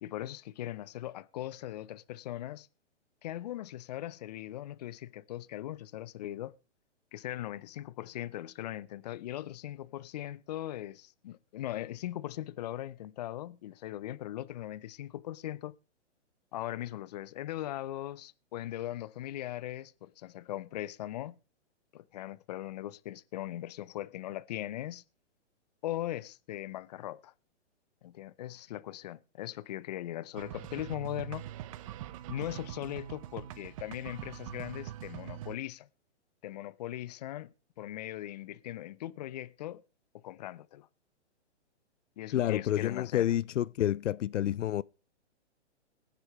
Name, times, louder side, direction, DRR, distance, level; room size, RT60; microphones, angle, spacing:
voice 1, 0.0-2.7 3.2-6.6 7.1-15.8 16.5-21.4 21.9-25.0 25.8-27.3 28.0-31.5 32.3-35.9 36.4-39.8 40.1-40.9 42.2-43.3, left 13 dB, 35° left, 0.5 m, -39 dB
sound 1, 30.3-35.6, right 12 dB, 30° right, 0.7 m, -43 dB
voice 2, 42.3-44.8, left 12 dB, 85° left, 0.5 m, -29 dB
19.5 x 10.0 x 3.1 m
hypercardioid pair, 150°, 35 cm